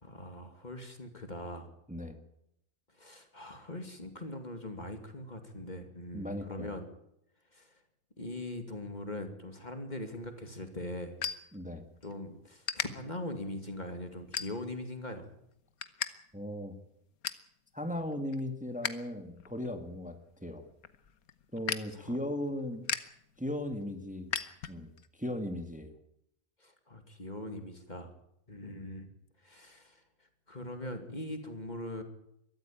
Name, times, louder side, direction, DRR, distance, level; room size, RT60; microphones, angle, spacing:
voice 1, 0.0-1.7 3.0-6.9 7.5-7.7 8.2-11.2 12.0-15.3 21.9-22.2 26.6-28.1 28.5-29.1 29.4-30.0 30.5-32.0, left 1 dB, 30° left, 7 dB, 2.6 m, -41 dB
voice 2, 6.1-6.8 11.5-11.9 16.3-16.8 17.7-20.7 21.5-22.9 23.4-24.3 24.7-26.0, left 1 dB, 5° right, 7 dB, 1.8 m, -37 dB
sound 1, 10.1-12.1 12.6-12.9 13.4-13.7 14.3-14.9 15.3-16.1 16.4-16.5 16.9-17.5 18.0-19.0 19.3-25.1, left 7 dB, 90° left, 1.6 m, -38 dB
22.0 x 14.0 x 8.8 m, 0.77 s
omnidirectional pair, 1.5 m